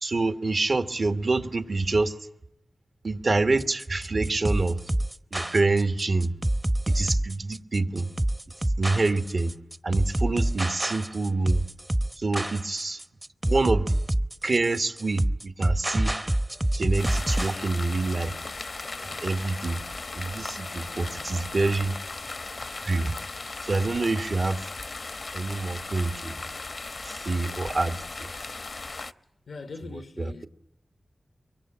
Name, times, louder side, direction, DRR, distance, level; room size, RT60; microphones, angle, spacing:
voice 1, 0.0-2.1 3.0-4.8 5.3-6.3 6.9-8.1 8.8-9.5 9.8-11.6 12.2-13.0 13.4-13.9 14.4-16.1 16.8-18.3 19.0-19.8 20.1-21.9 22.8-23.1 23.6-24.7 25.3-26.5 27.1-28.3 29.9-30.5, right 3 dB, 65° right, 1.7 m, -26 dB
sound 1, 3.6-17.6, right 1 dB, 25° right, 0.9 m, -27 dB
sound 2, 17.0-29.1, left 3 dB, 60° left, 0.9 m, -37 dB
voice 2, 29.5-30.5, left 4 dB, 85° left, 1.1 m, -40 dB
24.0 x 23.5 x 8.8 m
cardioid pair, 45°, 0 cm